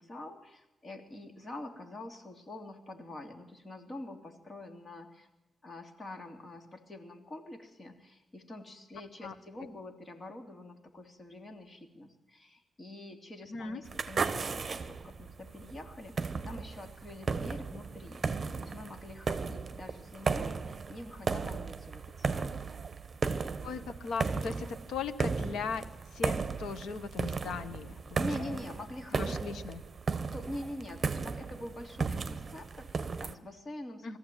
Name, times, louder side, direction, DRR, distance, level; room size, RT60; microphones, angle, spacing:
voice 1, 0.0-5.3 5.6-22.5 28.2-29.4 30.3-34.2, left 1 dB, 30° left, 4 dB, 3.0 m, -45 dB
voice 2, 13.5-13.8 23.6-25.8 26.1-28.6 29.1-29.8 34.0-34.2, left 5 dB, 90° left, 10 dB, 1.6 m, -38 dB
sound 1, 13.9-33.3, right 4 dB, 35° right, 1.2 m, -35 dB
23.0 x 14.5 x 9.3 m, 1.0 s
cardioid pair, 120°, 0 cm